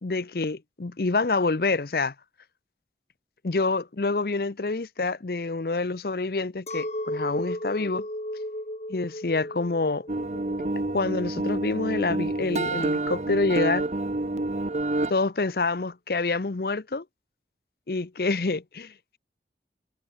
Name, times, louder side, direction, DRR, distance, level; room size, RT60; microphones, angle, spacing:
voice 1, 0.0-2.1 3.4-8.1 8.9-10.1 10.9-13.9 15.1-17.0 17.9-19.2, left 3 dB, 55° left, 0.7 m, -27 dB
Chink clink, 6.7-12.1, left 1 dB, 40° left, 6.0 m, -35 dB
sound 1, 10.1-15.1, right 2 dB, 40° right, 0.8 m, -28 dB
head